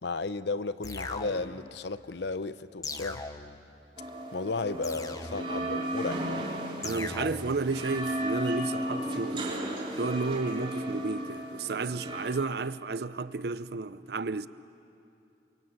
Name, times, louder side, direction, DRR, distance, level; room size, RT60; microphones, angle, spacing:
voice 1, 0.0-3.2 4.3-6.4, left 3 dB, 70° left, 0.7 m, -34 dB
sound 1, 0.8-1.7 2.8-3.7 4.8-5.7 6.8-7.7, left 3 dB, 20° left, 0.9 m, -39 dB
sound 2, 4.0-12.3, right 1 dB, 30° right, 3.2 m, -34 dB
voice 2, 6.8-9.7 10.0-14.5, right 3 dB, 60° right, 0.6 m, -32 dB
29.5 x 25.0 x 8.0 m
head